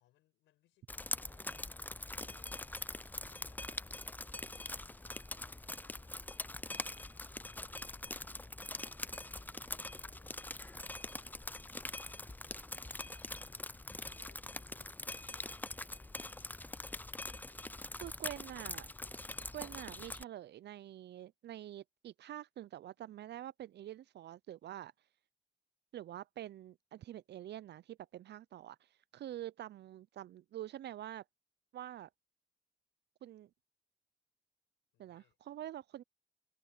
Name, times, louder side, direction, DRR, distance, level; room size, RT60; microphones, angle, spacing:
voice 1, 0.0-2.7 3.2-7.1 7.7-12.5 13.1-15.8 17.3-17.9 34.9-35.4, left 15 dB, 85° left, 6.3 m, -74 dB
Drip, 0.9-20.2, left 2 dB, 10° left, 0.5 m, -43 dB
voice 2, 18.0-18.9 19.5-24.9 25.9-31.2 31.7-32.1 33.2-33.5 35.0-36.0, right 12 dB, 65° right, 0.6 m, -46 dB
supercardioid pair, 50°, 19 cm